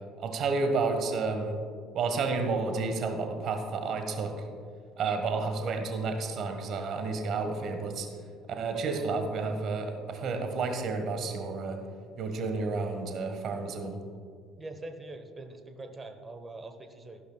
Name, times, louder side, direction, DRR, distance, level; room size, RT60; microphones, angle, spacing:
voice 1, 0.2-1.6 1.9-4.3 5.0-8.1 8.5-11.8 12.2-14.0, right 4 dB, 45° right, 5 dB, 1.4 m, -31 dB
voice 2, 8.7-9.1 14.6-17.2, right 2 dB, 25° right, 7 dB, 1.1 m, -43 dB
14.0 x 11.5 x 2.3 m, 2.2 s
figure-of-eight pair, 60°, 0 cm